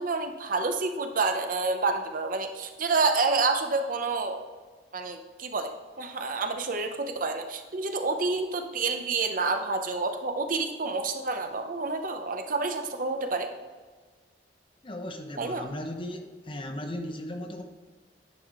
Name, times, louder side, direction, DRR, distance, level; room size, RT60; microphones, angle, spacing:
voice 1, 0.0-4.4 4.9-13.5 15.4-15.7, right 3 dB, 50° right, 6 dB, 0.7 m, -28 dB
voice 2, 14.8-17.6, left 1 dB, 30° left, 5 dB, 0.7 m, -37 dB
9.9 x 4.8 x 3.7 m, 1.4 s
head